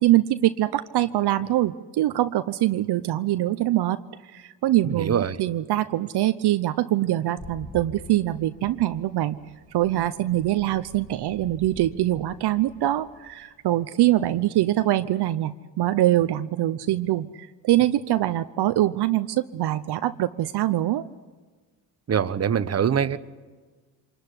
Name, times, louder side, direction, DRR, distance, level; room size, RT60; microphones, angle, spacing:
voice 1, 0.0-4.0 4.3-9.4 9.7-21.0, right 14 dB, 70° right, 11 dB, 0.8 m, -23 dB
voice 2, 4.8-5.4 22.1-23.2, right 8 dB, 35° right, 12 dB, 1.1 m, -23 dB
sound 1, 7.4-13.9, left 2 dB, 20° left, 5.0 m, -46 dB
25.5 x 21.0 x 9.9 m, 1.4 s
cardioid pair, 80°, 41 cm